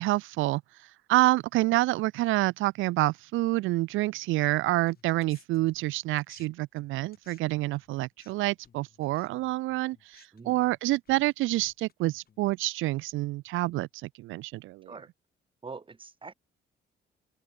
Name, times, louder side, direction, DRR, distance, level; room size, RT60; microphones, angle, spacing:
voice 1, 0.0-14.9, right 18 dB, 85° right, 0.4 m, -28 dB
sound 1, 4.9-6.5 6.8-12.5, left 7 dB, 50° left, 5.7 m, -61 dB
voice 2, 10.3-10.6 14.8-15.1 15.6-16.3, right 4 dB, 25° right, 1.5 m, -44 dB
open air
cardioid pair, 90°, 20 cm